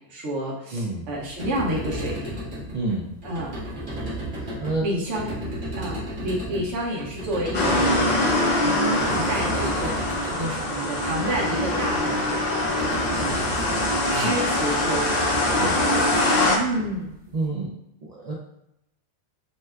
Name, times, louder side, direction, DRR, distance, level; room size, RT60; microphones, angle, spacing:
voice 1, 0.1-2.5 3.2-3.6 4.8-5.3 5.8-9.9 10.2-13.6 14.0-15.3 16.6-17.2, right 1 dB, 85° right, -3 dB, 1.0 m, -30 dB
voice 2, 0.7-1.1 2.7-3.1 4.6-4.9 6.5-6.6 14.1-14.4 15.5-15.9 17.3-17.7 18.0-18.3, right 2 dB, 65° right, -4 dB, 0.4 m, -28 dB
sound 1, 1.2-17.3, equal, 50° right, 1.0 m, -34 dB
sound 2, 7.5-16.6, left 1 dB, 50° left, 0.5 m, -23 dB
2.7 x 2.2 x 3.3 m, 0.82 s
omnidirectional pair, 1.2 m